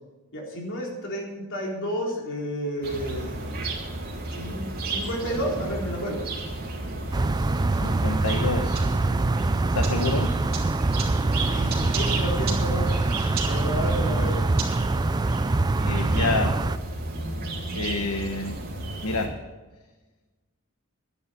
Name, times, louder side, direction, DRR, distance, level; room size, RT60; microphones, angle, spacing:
voice 1, 0.3-3.5 4.3-6.2 11.5-12.9 13.5-14.4, equal, 60° left, -2 dB, 3.9 m, -31 dB
sound 1, 2.8-19.3, right 2 dB, 45° right, 3.1 m, -33 dB
sound 2, 7.1-16.8, right 2 dB, 20° right, 0.4 m, -24 dB
voice 2, 7.8-8.8 9.7-10.3 15.8-16.6 17.7-18.6 19.0-19.3, left 3 dB, 80° left, 5 dB, 1.1 m, -28 dB
12.0 x 10.5 x 7.0 m, 1.2 s
head